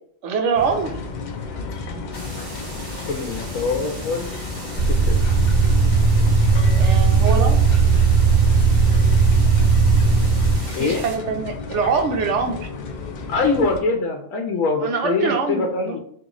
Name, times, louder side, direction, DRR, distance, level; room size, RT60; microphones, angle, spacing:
voice 1, 0.2-1.0 6.8-7.8 10.7-12.7 14.8-16.0, right 5 dB, 70° right, 5 dB, 0.9 m, -24 dB
sound 1, 0.6-13.8, left 4 dB, 65° left, 0.4 m, -33 dB
sound 2, 2.1-11.2, right 1 dB, 20° right, 0.7 m, -37 dB
voice 2, 3.0-4.3 4.9-5.2 10.7-11.0 13.3-16.0, left 4 dB, 80° left, 2 dB, 1.0 m, -23 dB
sound 3, 4.8-10.6, right 4 dB, 30° left, 1.6 m, -16 dB
2.9 x 2.8 x 3.8 m, 0.65 s
omnidirectional pair, 1.3 m